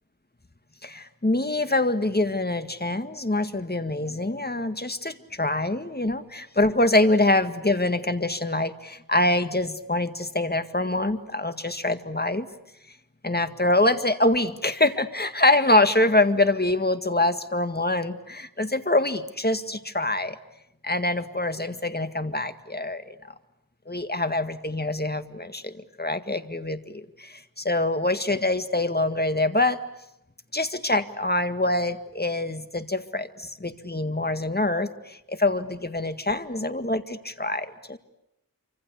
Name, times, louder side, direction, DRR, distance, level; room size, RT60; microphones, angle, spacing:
voice 1, 0.8-12.5 13.2-20.4 20.8-23.2 23.9-29.8 30.5-38.0, left 2 dB, 30° left, 9 dB, 1.9 m, -25 dB
27.0 x 26.0 x 8.3 m, 0.83 s
wide cardioid pair, 45°, 34 cm